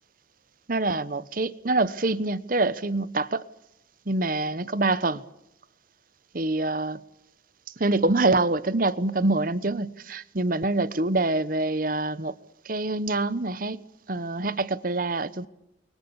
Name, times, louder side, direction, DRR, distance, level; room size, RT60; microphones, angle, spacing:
voice 1, 0.7-3.4 4.1-5.2 6.3-7.0 7.8-12.3 12.7-13.8 14.1-15.5, right 2 dB, 45° right, 1.0 m, -25 dB
30.0 x 23.0 x 7.1 m
head